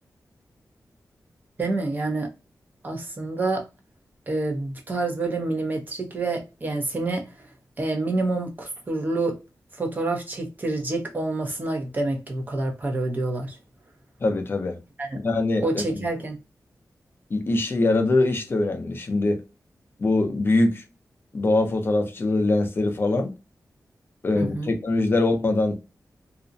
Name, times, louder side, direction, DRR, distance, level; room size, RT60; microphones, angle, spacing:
voice 1, 1.6-2.3 2.8-3.6 4.3-7.5 7.8-9.4 9.7-13.6 15.0-15.2 15.6-16.4 24.3-24.7, right 2 dB, 30° right, 0.7 m, -27 dB
voice 2, 14.2-14.8 15.2-16.0 17.3-19.4 20.0-20.8 21.3-23.3 24.2-25.7, left 2 dB, 35° left, 0.5 m, -23 dB
2.4 x 2.1 x 2.5 m
wide cardioid pair, 155°, 6 cm